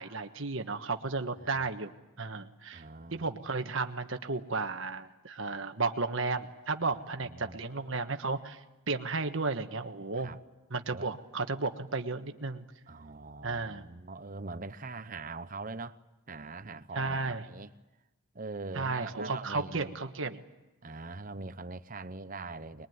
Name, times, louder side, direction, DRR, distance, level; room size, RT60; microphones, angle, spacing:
voice 1, 0.0-1.9 2.2-2.8 3.1-8.6 8.9-10.3 10.7-12.7 13.4-13.9 16.9-17.4 18.7-20.4, right 3 dB, 60° right, 7 dB, 1.4 m, -33 dB
voice 2, 2.7-3.3 7.2-7.6 10.1-10.4 10.9-11.1 12.9-16.0 16.3-17.7 18.3-20.0 20.8-22.9, right 3 dB, 35° right, 12 dB, 0.8 m, -42 dB
22.5 x 22.0 x 9.5 m, 1.1 s
head